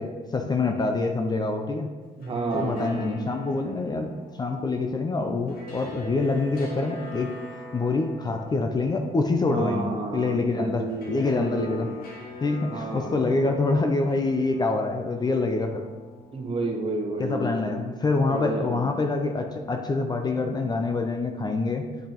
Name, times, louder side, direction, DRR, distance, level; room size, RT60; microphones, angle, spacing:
voice 1, 0.0-1.9 2.5-4.1 4.4-7.4 7.7-11.9 12.4-15.9 17.2-21.9, left 3 dB, 25° left, 5 dB, 0.5 m, -26 dB
sound 1, 2.1-17.2, left 1 dB, 60° left, 1.3 m, -43 dB
voice 2, 2.2-3.2 9.5-11.9 12.7-13.5 16.3-17.8 18.1-18.9, right 3 dB, 35° right, 2 dB, 1.2 m, -31 dB
8.9 x 5.2 x 3.0 m, 1.3 s
cardioid pair, 110°, 17 cm